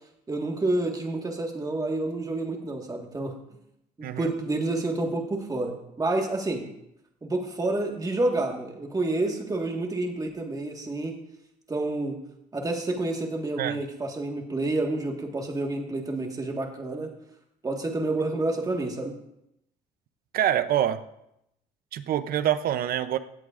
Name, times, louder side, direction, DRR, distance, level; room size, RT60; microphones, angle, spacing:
voice 1, 0.3-3.4 4.0-6.6 7.2-11.1 11.7-12.2 12.5-17.1 17.6-19.1, right 2 dB, 20° right, 2 dB, 1.6 m, -29 dB
voice 2, 20.3-21.0 21.9-23.2, right 11 dB, 60° right, 13 dB, 0.6 m, -25 dB
16.0 x 8.1 x 2.5 m, 0.80 s
cardioid pair, 110°, 17 cm